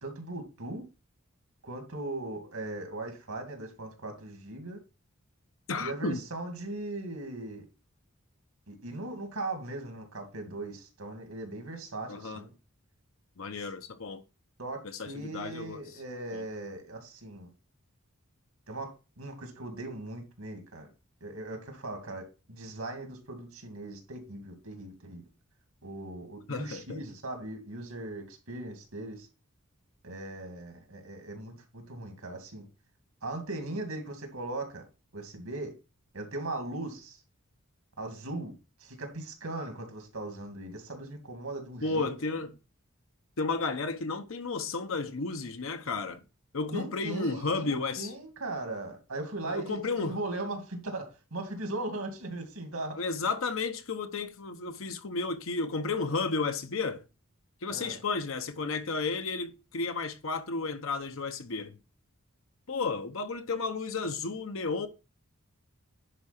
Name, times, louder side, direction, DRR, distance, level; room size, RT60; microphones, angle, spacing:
voice 1, 0.0-0.8 1.6-4.8 5.8-7.6 8.7-12.5 13.5-13.7 14.6-14.8 15.1-17.5 18.7-20.9 21.2-25.2 25.8-29.3 30.0-32.7 33.2-34.8 35.1-35.7 36.1-37.2 38.0-38.5 38.8-42.1 46.7-53.0 57.7-58.0, right 2 dB, 80° right, 2.5 m, -39 dB
voice 2, 5.7-6.2 12.1-12.4 13.4-14.2 14.8-15.8 16.3-16.4 26.5-27.0 41.8-42.5 43.4-46.2 46.5-48.1 49.5-50.2 53.0-57.0 57.6-61.8 62.7-64.9, left 4 dB, 65° left, 0.9 m, -33 dB
10.5 x 4.8 x 4.3 m
head